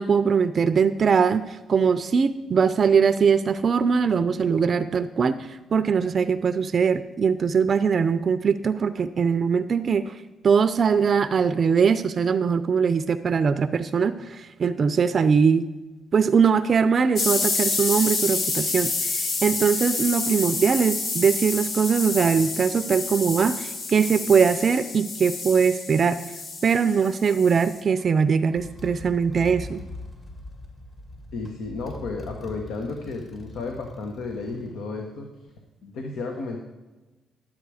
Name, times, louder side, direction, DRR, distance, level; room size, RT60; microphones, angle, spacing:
voice 1, 0.0-10.2 10.4-15.7 16.1-26.2 26.6-29.8, right 6 dB, 45° right, 12 dB, 0.4 m, -21 dB
sound 1, 17.2-27.8, left 3 dB, 60° left, 1.3 m, -28 dB
Motorcycle, 28.0-28.1 28.5-34.7, left 2 dB, 35° left, 2.2 m, -41 dB
voice 2, 31.3-35.3 35.8-36.6, left 3 dB, 80° left, 3 dB, 1.1 m, -33 dB
11.5 x 7.5 x 4.8 m, 1.2 s
cardioid pair, 90°, 0 cm